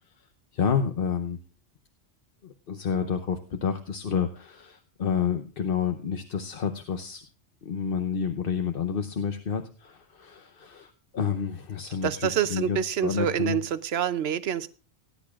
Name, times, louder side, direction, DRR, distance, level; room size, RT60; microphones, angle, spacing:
voice 1, 0.5-1.4 2.4-7.2 7.6-13.6, left 7 dB, 55° left, 6 dB, 1.0 m, -29 dB
voice 2, 12.0-14.7, right 9 dB, 65° right, 14 dB, 0.9 m, -27 dB
18.5 x 10.5 x 2.4 m, 0.36 s
omnidirectional pair, 1.2 m